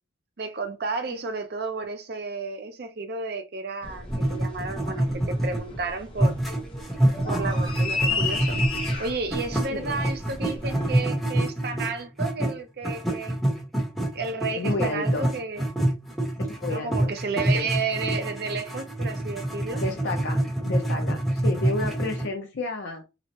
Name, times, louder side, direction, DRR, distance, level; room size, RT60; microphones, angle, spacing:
voice 1, 0.4-6.4 7.3-8.6 9.0-13.3 14.1-15.6 16.7-19.8, right 4 dB, 50° right, 0.5 m, -32 dB
sound 1, 3.8-11.0, left 4 dB, 25° left, 0.6 m, -34 dB
sound 2, 4.1-5.8 6.2-12.5 12.8-22.3, right 1 dB, ahead, 0.8 m, -26 dB
voice 2, 14.6-15.3 16.4-17.1 17.4-17.7 19.7-23.0, left 2 dB, 70° left, 0.5 m, -31 dB
3.0 x 2.0 x 2.8 m
head